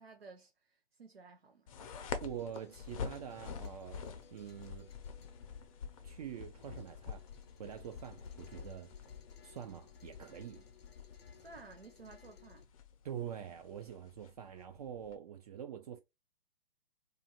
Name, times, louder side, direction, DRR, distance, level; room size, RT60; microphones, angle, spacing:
voice 1, 0.0-1.7 11.3-12.7, right 4 dB, 90° right, 0.7 m, -55 dB
sound 1, 1.7-15.2, left 6 dB, 35° left, 0.5 m, -47 dB
sound 2, 1.9-12.7, left 6 dB, 85° left, 0.6 m, -64 dB
voice 2, 2.2-4.1 4.3-4.9 6.0-7.2 7.6-8.9 9.4-10.6 13.0-16.0, right 9 dB, 40° right, 0.4 m, -45 dB
2.6 x 2.5 x 2.9 m
figure-of-eight pair, 125°, 30 cm